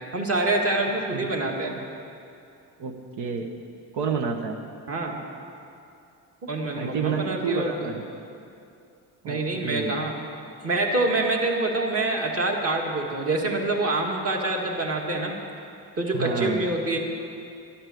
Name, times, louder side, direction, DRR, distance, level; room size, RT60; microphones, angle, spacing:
voice 1, 0.1-1.8 4.9-5.2 6.4-7.9 9.3-10.1 10.6-15.3 16.0-17.0, right 2 dB, 35° right, 1 dB, 1.9 m, -26 dB
voice 2, 2.8-3.5 3.9-4.6 6.8-8.0 9.2-10.0 16.1-16.6, right 5 dB, 90° right, 4 dB, 1.2 m, -29 dB
13.0 x 11.5 x 7.0 m, 2.6 s
cardioid pair, 135°, 39 cm